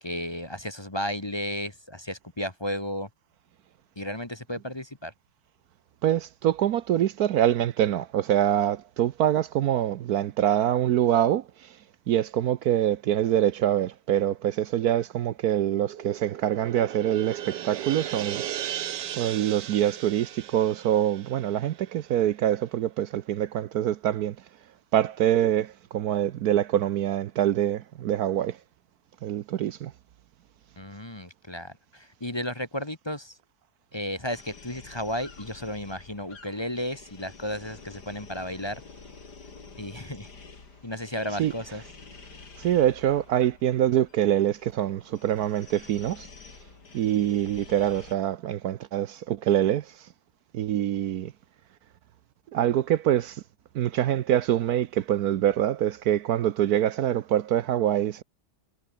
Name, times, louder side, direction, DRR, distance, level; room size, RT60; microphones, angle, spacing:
voice 1, 0.0-3.1 3.9-5.1 30.8-33.4 33.9-38.8 39.8-40.3 40.8-41.8, left 1 dB, 15° left, 1.5 m, -33 dB
voice 2, 6.0-11.8 12.1-18.4 19.1-24.4 24.9-28.6 29.2-29.9 41.4-41.5 42.6-46.3 46.9-49.9 50.5-51.3 52.5-53.4 53.7-58.2, right 11 dB, 70° right, 1.2 m, -25 dB
sound 1, 15.7-22.3, right 11 dB, 85° right, 1.6 m, -37 dB
sound 2, 34.3-48.2, left 4 dB, 80° left, 3.5 m, -49 dB
omnidirectional pair, 1.8 m